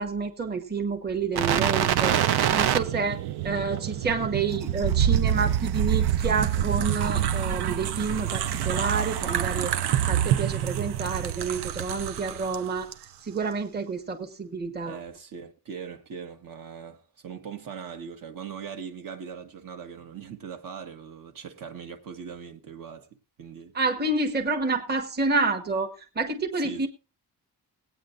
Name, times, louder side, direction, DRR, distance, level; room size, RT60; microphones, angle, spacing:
voice 1, 0.0-2.2 2.5-3.2 3.4-12.9 13.2-15.0 23.7-26.9, right 4 dB, 25° right, 1.2 m, -29 dB
sound 1, 1.4-12.6 12.9-13.0, right 10 dB, 70° right, 0.8 m, -26 dB
voice 2, 14.9-23.1 23.4-23.7 26.6-26.9, right 7 dB, 55° right, 1.3 m, -40 dB
20.5 x 9.0 x 2.5 m
wide cardioid pair, 180°, 40 cm